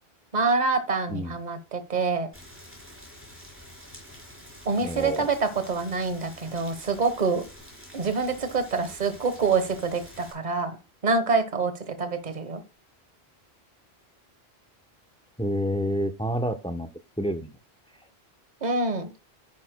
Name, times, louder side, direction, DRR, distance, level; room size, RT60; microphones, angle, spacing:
voice 1, 0.3-2.3 4.6-7.4 7.9-10.8 11.0-12.6 18.6-19.1, right 4 dB, 45° right, 10 dB, 1.3 m, -26 dB
Rain, 2.3-10.3, left 1 dB, 10° right, 4.4 m, -47 dB
voice 2, 4.8-5.3 15.4-16.9 17.2-17.6, equal, 5° left, 9 dB, 0.7 m, -28 dB
10.5 x 9.8 x 2.2 m, 0.31 s
omnidirectional pair, 1.1 m